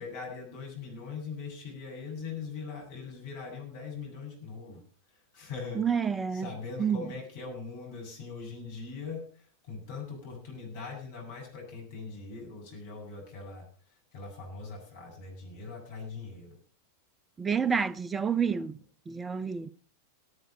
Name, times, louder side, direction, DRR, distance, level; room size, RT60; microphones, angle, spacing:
voice 1, 0.0-4.8 5.3-5.8 6.3-9.2 9.6-13.7 14.1-16.6, left 4 dB, 50° left, 7.9 m, -41 dB
voice 2, 5.7-6.5 6.8-7.0 17.4-18.7 19.1-19.7, right 6 dB, 15° right, 0.7 m, -29 dB
17.5 x 9.8 x 5.2 m
figure-of-eight pair, 90°, 0 cm